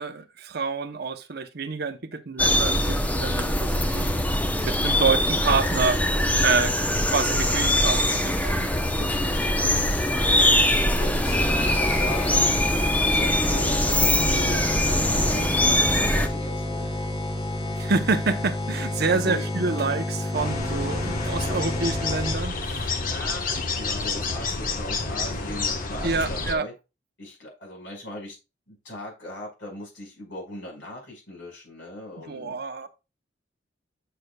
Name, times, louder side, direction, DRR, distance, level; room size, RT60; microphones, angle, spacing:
voice 1, 0.0-4.1 4.6-6.0 6.4-6.7 7.0-8.7 14.2-14.5 17.7-22.9 26.0-26.7 32.3-32.9, right 4 dB, 55° right, 0.8 m, -27 dB
sound 1, 2.4-16.3, left 1 dB, 10° left, 0.8 m, -22 dB
voice 2, 8.7-11.4 11.7-12.5 12.9-16.9 19.0-19.4 21.4-22.1 22.7-26.7 27.2-28.4 28.7-32.6, left 1 dB, 70° left, 5.0 m, -39 dB
sound 2, 11.2-22.6, left 1 dB, 25° left, 2.1 m, -30 dB
sound 3, 20.3-26.5, left 3 dB, 45° left, 1.2 m, -29 dB
9.0 x 6.6 x 2.3 m
head